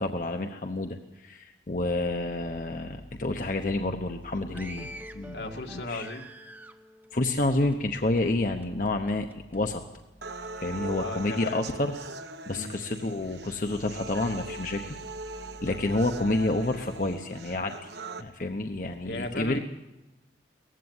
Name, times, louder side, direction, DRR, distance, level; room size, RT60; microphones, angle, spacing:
voice 1, 0.0-4.9 5.1-5.4 5.7-6.1 7.1-9.3 9.5-9.8 10.6-11.9 12.5-14.9 15.6-17.9 18.2-19.6, left 2 dB, 50° left, 5 dB, 1.0 m, -29 dB
sound 1, 4.5-8.2 8.6-9.6 10.2-10.5, equal, 10° right, 0.8 m, -46 dB
voice 2, 5.3-6.3 11.0-11.7 12.5-12.7 19.0-19.6, left 2 dB, 75° left, 3 dB, 2.1 m, -36 dB
sound 2, 10.2-18.2, right 2 dB, 75° right, 1.1 m, -40 dB
18.5 x 15.5 x 9.6 m, 1.0 s
head